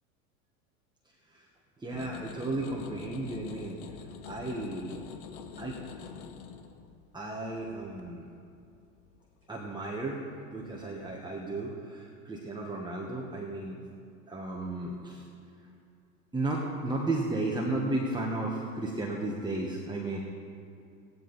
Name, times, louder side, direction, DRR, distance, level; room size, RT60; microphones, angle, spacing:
voice 1, 1.8-3.8 4.2-4.9 5.6-5.8 7.1-8.3 9.5-10.2 10.5-13.8 14.3-15.2 16.3-20.2, right 2 dB, 10° right, -3 dB, 1.3 m, -34 dB
sound 1, 1.9-10.1 10.6-11.1, left 7 dB, 55° left, 1.1 m, -47 dB
15.0 x 10.0 x 4.1 m, 2.5 s
hypercardioid pair, 90°, 42 cm